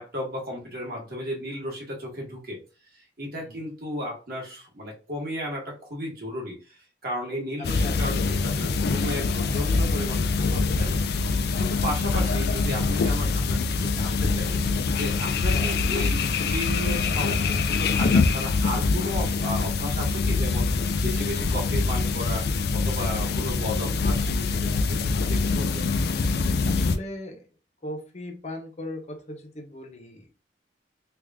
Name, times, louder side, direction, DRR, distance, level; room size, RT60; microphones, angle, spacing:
voice 1, 0.0-2.6 2.9-6.6 7.0-11.0 11.6-25.9, equal, 55° right, -3 dB, 1.6 m, -34 dB
sound 1, 7.6-27.0, left 4 dB, 60° left, 0.4 m, -24 dB
voice 2, 7.6-8.3 15.5-15.8 24.0-24.4 26.6-27.4 27.8-30.4, left 1 dB, 40° left, 3 dB, 0.8 m, -39 dB
3.4 x 2.5 x 3.5 m, 0.34 s
head